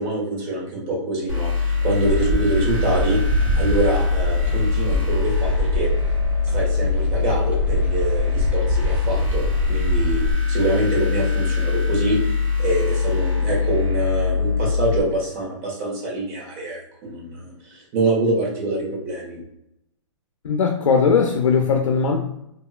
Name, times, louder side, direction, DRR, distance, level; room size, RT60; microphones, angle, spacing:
voice 1, 0.0-3.2 3.6-5.9 6.5-10.2 10.5-12.2 12.6-19.4, right 2 dB, 30° right, -3 dB, 1.3 m, -25 dB
sound 1, 1.3-15.0, left 5 dB, 90° right, 1.3 m, -22 dB
sound 2, 2.0-10.3, right 2 dB, 10° right, 0.4 m, -26 dB
voice 2, 20.4-22.2, left 5 dB, 85° left, 3 dB, 0.5 m, -19 dB
2.8 x 2.6 x 2.4 m, 0.81 s
hypercardioid pair, 145°, 16 cm